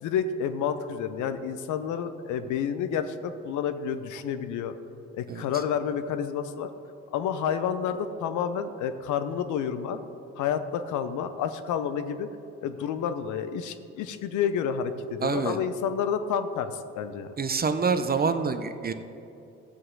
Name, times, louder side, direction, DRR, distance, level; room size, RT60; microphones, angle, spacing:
voice 1, 0.0-4.7 5.1-6.7 7.1-10.0 10.4-12.3 12.6-17.3, left 7 dB, 55° left, 10 dB, 0.7 m, -29 dB
voice 2, 15.2-15.6 17.4-18.9, right 5 dB, 25° right, 9 dB, 0.7 m, -26 dB
15.0 x 7.6 x 3.9 m, 2.8 s
figure-of-eight pair, 45°, 35 cm